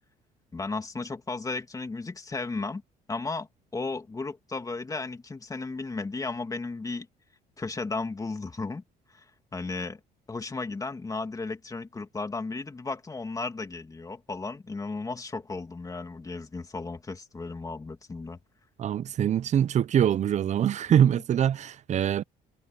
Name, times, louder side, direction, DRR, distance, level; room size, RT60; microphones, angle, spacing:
voice 1, 0.5-2.8 3.1-7.1 7.6-8.8 9.1-9.2 9.5-10.0 10.3-18.4, left 3 dB, 20° left, 2.6 m, -34 dB
voice 2, 18.8-22.2, right 9 dB, 45° right, 0.6 m, -24 dB
cardioid pair, 110°, 17 cm